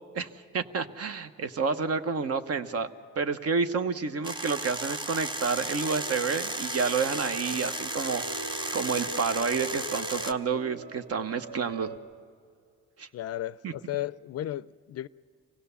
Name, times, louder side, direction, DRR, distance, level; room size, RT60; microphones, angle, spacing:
voice 1, 0.5-2.9 3.2-8.2 8.7-11.9 13.0-13.1 13.6-13.7, right 5 dB, 55° right, 1.0 m, -29 dB
sound 1, 4.2-10.3, right 1 dB, 15° right, 0.8 m, -34 dB
sound 2, 5.3-12.0, right 1 dB, 80° right, 3.5 m, -42 dB
voice 2, 13.1-15.1, left 13 dB, 55° left, 0.4 m, -34 dB
25.0 x 16.5 x 6.9 m
cardioid pair, 90°, 30 cm